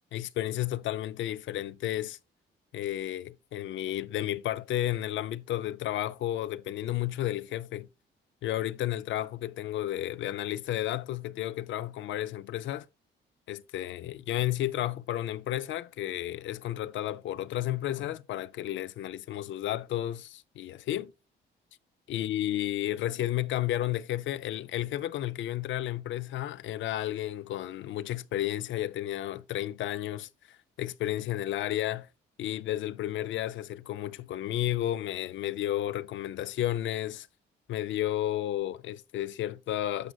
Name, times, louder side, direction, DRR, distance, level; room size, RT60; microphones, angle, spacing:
voice 1, 0.1-2.2 2.7-7.9 8.4-12.9 13.5-21.1 22.1-32.1 32.4-37.3 37.7-40.1, left 13 dB, 70° left, 0.5 m, -32 dB
11.5 x 6.2 x 2.3 m
cardioid pair, 90°, 20 cm